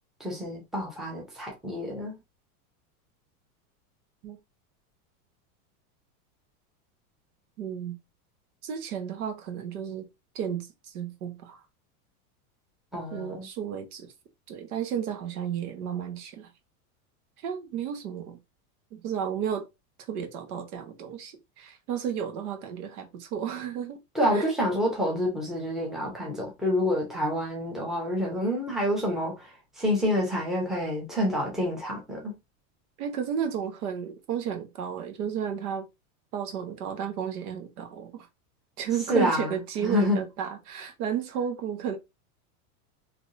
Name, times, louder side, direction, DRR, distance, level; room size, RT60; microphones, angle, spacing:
voice 1, 0.2-2.2 12.9-13.5 24.1-29.5 29.8-32.3 39.1-39.6 39.8-40.2, left 1 dB, ahead, 0.8 m, -28 dB
voice 2, 7.6-8.0 8.6-10.1 10.3-11.6 13.1-14.1 14.5-16.5 17.4-18.4 18.9-19.6 20.1-24.0 24.3-24.5 33.0-35.9 36.3-38.3 38.8-42.0, right 8 dB, 75° right, 1.2 m, -33 dB
3.5 x 2.9 x 2.6 m
supercardioid pair, 155°, 45 cm